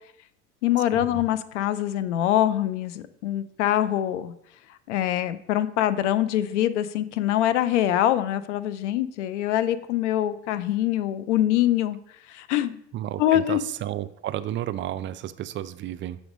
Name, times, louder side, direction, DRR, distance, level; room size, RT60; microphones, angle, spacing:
voice 1, 0.6-4.3 4.9-12.0 12.3-12.8 13.2-13.6, left 12 dB, 90° left, 14 dB, 0.5 m, -24 dB
voice 2, 12.9-16.2, right 12 dB, 35° right, 14 dB, 0.4 m, -32 dB
6.1 x 3.2 x 5.0 m, 0.73 s
hypercardioid pair, 80°, 34 cm